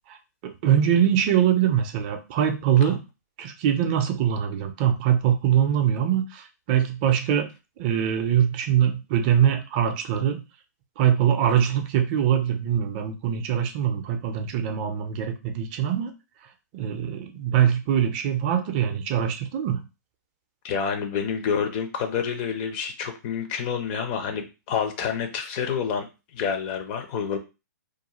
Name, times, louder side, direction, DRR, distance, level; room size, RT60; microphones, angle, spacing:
voice 1, 0.4-3.0 3.4-7.5 7.8-10.4 11.0-16.1 16.7-19.8, right 9 dB, 35° right, 5 dB, 0.5 m, -23 dB
voice 2, 20.6-26.1 26.3-27.4, left 7 dB, 35° left, 6 dB, 0.5 m, -28 dB
2.4 x 2.1 x 2.9 m, 0.28 s
figure-of-eight pair, 120°, 9 cm